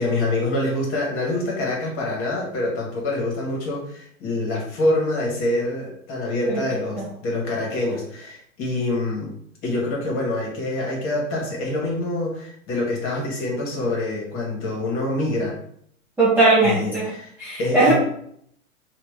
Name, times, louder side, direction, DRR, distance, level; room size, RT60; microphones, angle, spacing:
voice 1, 0.0-9.3 9.6-15.6 16.6-17.3 17.6-17.9, left 2 dB, 30° left, -2 dB, 1.8 m, -25 dB
voice 2, 16.2-17.1 17.4-17.9, right 2 dB, 5° right, -9 dB, 1.0 m, -18 dB
4.9 x 2.9 x 3.6 m, 0.67 s
figure-of-eight pair, 115°, 42 cm